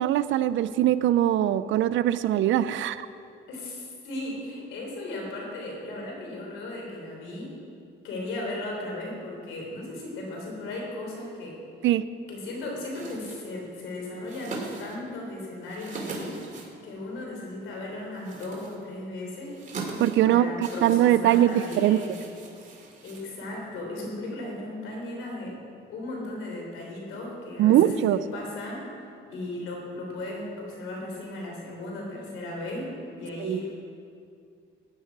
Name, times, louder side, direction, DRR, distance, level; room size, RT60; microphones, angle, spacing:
voice 1, 0.0-3.1 11.8-12.0 20.0-20.5 20.8-22.0 27.6-28.2 33.4-33.6, right 12 dB, 75° right, 13 dB, 0.5 m, -21 dB
voice 2, 3.5-7.5 8.0-11.6 12.3-16.4 16.8-19.5 20.2-22.2 23.0-25.6 25.9-28.8 29.3-32.9 33.2-33.7, left 2 dB, 85° left, -1 dB, 3.4 m, -36 dB
sound 1, 12.9-23.8, right 3 dB, 40° right, 2.6 m, -42 dB
14.5 x 9.7 x 4.7 m, 2.4 s
cardioid pair, 90°, 20 cm